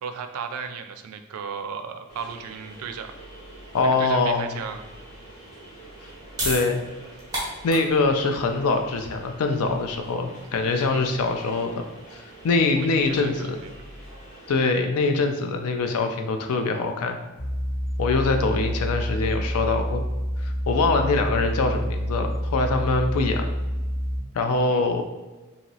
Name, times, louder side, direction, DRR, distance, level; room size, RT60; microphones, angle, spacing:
voice 1, 0.0-3.1 3.8-4.8 10.9-11.1 12.7-13.7 24.7-24.9, right 6 dB, 85° right, 7 dB, 0.3 m, -35 dB
sound 1, 2.1-14.5, right 1 dB, 35° left, 1.1 m, -46 dB
voice 2, 3.7-4.6 6.4-6.8 7.6-11.8 12.1-13.6 14.5-17.2 18.0-20.0 20.4-23.5 24.3-25.1, left 3 dB, 90° left, 5 dB, 0.4 m, -23 dB
sound 2, 6.3-12.7, right 1 dB, 15° right, 0.8 m, -35 dB
sound 3, 17.4-24.2, equal, 50° left, 0.8 m, -28 dB
2.9 x 2.7 x 2.7 m, 1.2 s
head